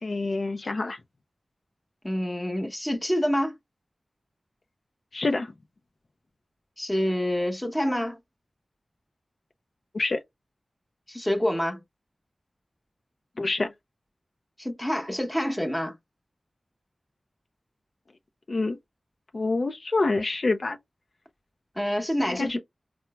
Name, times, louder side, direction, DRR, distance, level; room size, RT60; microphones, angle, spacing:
voice 1, 0.0-1.0 5.1-5.5 9.9-10.2 13.4-13.7 18.5-18.8 19.3-20.8 22.3-22.6, left 3 dB, 65° left, 0.4 m, -26 dB
voice 2, 2.0-3.5 6.8-8.2 11.1-11.8 14.6-15.9 21.8-22.6, equal, 10° left, 0.9 m, -27 dB
4.3 x 2.0 x 2.3 m
cardioid pair, 45°, 0 cm